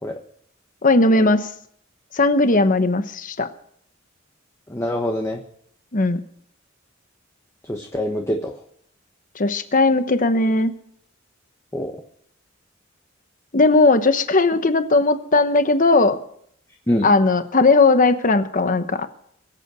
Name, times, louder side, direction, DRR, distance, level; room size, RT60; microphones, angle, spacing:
voice 1, 0.8-1.5 2.1-3.5 5.9-6.2 9.3-10.7 13.5-16.2 17.0-19.1, left 3 dB, 40° left, 10 dB, 1.1 m, -17 dB
voice 2, 4.7-5.4 7.7-8.5 11.7-12.0 16.9-17.1, left 1 dB, 15° left, 2 dB, 1.2 m, -24 dB
22.0 x 8.3 x 6.2 m, 0.68 s
head